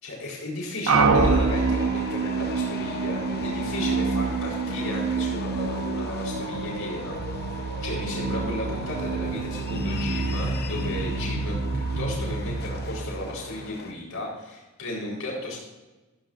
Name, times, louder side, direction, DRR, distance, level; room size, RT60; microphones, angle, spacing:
voice 1, 0.0-15.6, left 2 dB, 80° left, -4 dB, 4.1 m, -35 dB
sound 1, 0.9-13.7, right 4 dB, 85° right, 1.0 m, -27 dB
sound 2, 1.1-13.9, left 4 dB, 45° left, 0.8 m, -39 dB
14.0 x 13.5 x 2.6 m, 1.1 s
head